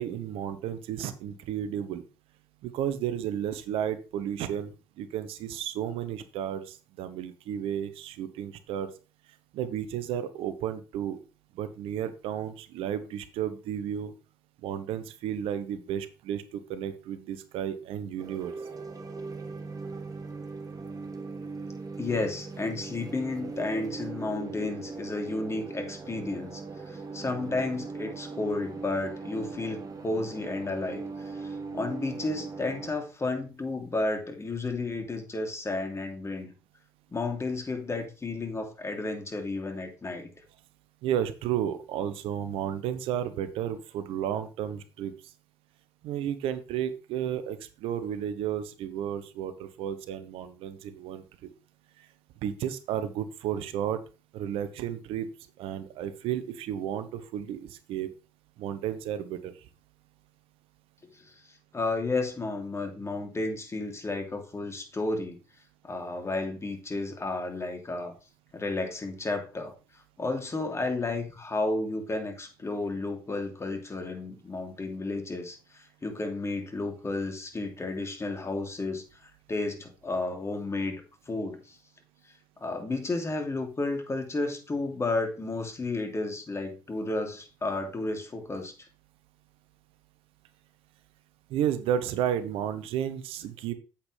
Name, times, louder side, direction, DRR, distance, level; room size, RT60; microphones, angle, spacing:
voice 1, 0.0-2.0 2.6-8.9 9.5-11.2 11.5-14.1 14.6-18.5 41.0-45.1 46.0-51.5 52.0-52.1 52.4-54.0 54.3-55.3 55.6-58.1 58.6-59.7 91.5-93.7, right 10 dB, 70° right, 12 dB, 1.0 m, -32 dB
sound 1, 18.2-32.9, right 4 dB, 35° right, 1.9 m, -39 dB
voice 2, 22.0-36.5 37.1-40.3 61.2-61.3 61.7-65.4 65.8-68.1 68.5-69.7 70.2-81.8 82.6-88.7, left 2 dB, 30° left, 4 dB, 3.1 m, -32 dB
8.6 x 8.3 x 3.4 m, 0.32 s
hypercardioid pair, 55°, 10 cm